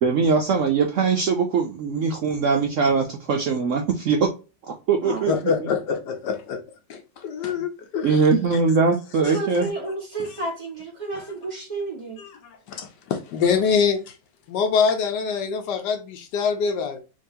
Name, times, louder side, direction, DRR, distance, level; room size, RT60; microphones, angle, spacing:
voice 1, 0.0-4.3 4.7-5.3 5.6-5.7 8.0-9.7, right 5 dB, 85° right, 0.6 m, -21 dB
voice 2, 5.3-6.6 6.9-8.2 8.5-8.6 9.2-9.3 10.2-10.3 11.1-11.3 12.2-14.1 14.5-17.0, left 6 dB, 70° left, 1.3 m, -25 dB
voice 3, 9.2-12.2, right 3 dB, 25° right, 1.5 m, -31 dB
3.8 x 3.0 x 2.6 m
omnidirectional pair, 2.0 m